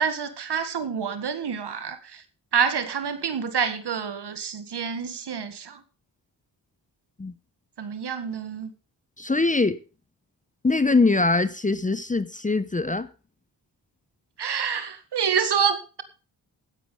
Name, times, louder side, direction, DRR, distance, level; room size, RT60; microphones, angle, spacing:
voice 1, 0.0-2.2 2.5-5.8 7.8-8.7 14.4-16.0, right 6 dB, 65° right, 1.8 m, -27 dB
voice 2, 9.2-9.8 10.6-13.1, left 3 dB, 20° left, 0.8 m, -22 dB
16.0 x 9.5 x 3.7 m
cardioid pair, 60°, 44 cm